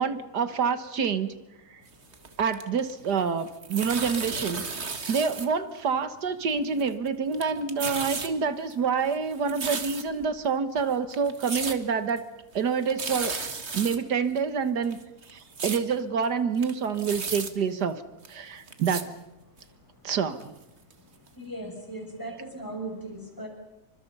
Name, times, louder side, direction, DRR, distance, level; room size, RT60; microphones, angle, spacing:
voice 1, 0.0-1.4 1.7-1.8 2.4-12.3 12.5-13.3 13.7-15.0 15.3-18.0 18.3-19.1 20.0-20.6, right 6 dB, 75° right, 11 dB, 2.0 m, -27 dB
sound 1, 1.9-3.1 3.4-5.5 5.7-5.8 6.6-7.1 7.3-8.3 8.7-10.3 10.8-10.9 11.1-11.8 12.1-12.2 12.5-12.6 12.8-14.0 14.4-14.5 14.8-15.8 16.2-16.3 16.5-17.5 18.2-18.3 18.7-19.0 19.6-19.7 20.4-20.5 20.9-21.0 21.3-21.4, right 4 dB, 40° right, 2.0 m, -34 dB
voice 2, 21.4-23.5, right 1 dB, 10° left, 2 dB, 6.4 m, -37 dB
28.5 x 25.0 x 5.5 m, 0.96 s
omnidirectional pair, 1.8 m